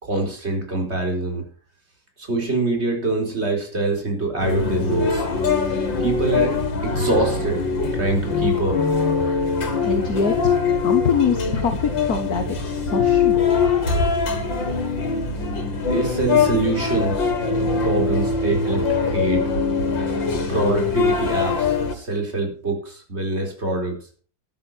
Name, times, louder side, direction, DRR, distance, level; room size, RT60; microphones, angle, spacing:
voice 1, 0.0-1.5 2.2-5.2 5.7-6.6 6.8-7.7 7.9-8.8 15.9-17.3 17.6-19.4 20.5-24.0, right 2 dB, 35° right, 2 dB, 4.5 m, -24 dB
Fancy Restaurant (atmosphere), 4.4-21.9, left 5 dB, 85° left, 2.9 m, -22 dB
voice 2, 9.8-10.5 10.8-13.4, left 6 dB, 55° left, 6 dB, 1.8 m, -24 dB
13.5 x 10.5 x 4.4 m, 0.41 s
omnidirectional pair, 2.0 m